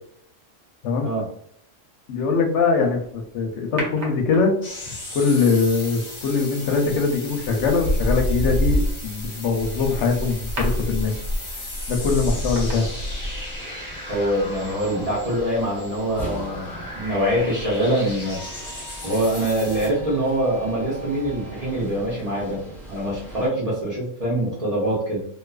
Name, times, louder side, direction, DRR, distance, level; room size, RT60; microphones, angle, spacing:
voice 1, 2.1-4.5 4.9-11.1 11.9-12.9, left 4 dB, 75° left, 3 dB, 0.9 m, -22 dB
sound 1, 3.8-4.8 6.7-7.0 7.4-13.6 13.9-14.0, equal, 65° right, 1.1 m, -26 dB
sound 2, 4.6-19.9, left 1 dB, 40° left, 0.8 m, -37 dB
sound 3, 12.2-23.5, right 1 dB, 5° left, 0.4 m, -39 dB
voice 2, 14.1-18.4 19.0-22.6 22.9-25.3, right 1 dB, 35° right, -7 dB, 0.8 m, -24 dB
2.5 x 2.3 x 2.3 m, 0.68 s
omnidirectional pair, 1.3 m